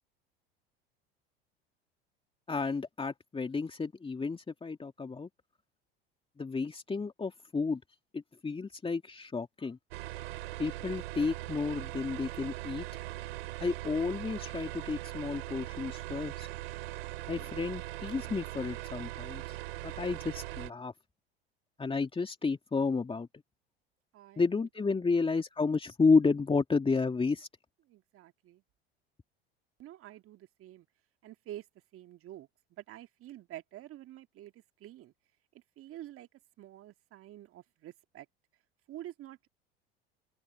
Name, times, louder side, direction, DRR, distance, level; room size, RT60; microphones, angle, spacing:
voice 1, 2.5-5.3 6.4-7.8 8.1-9.8 10.6-12.9 13.6-16.5 17.3-19.6 19.8-20.9 21.8-23.3 24.4-27.5, left 4 dB, 15° left, 2.4 m, -31 dB
sound 1, 9.9-20.7, right 18 dB, 70° right, 2.8 m, -40 dB
voice 2, 24.1-24.7 25.0-25.1 27.9-28.6 29.8-30.9 31.2-31.7 31.9-35.1 35.5-36.3 36.6-38.3 38.9-39.5, right 13 dB, 45° right, 2.1 m, -48 dB
open air
hypercardioid pair, 75°, 31 cm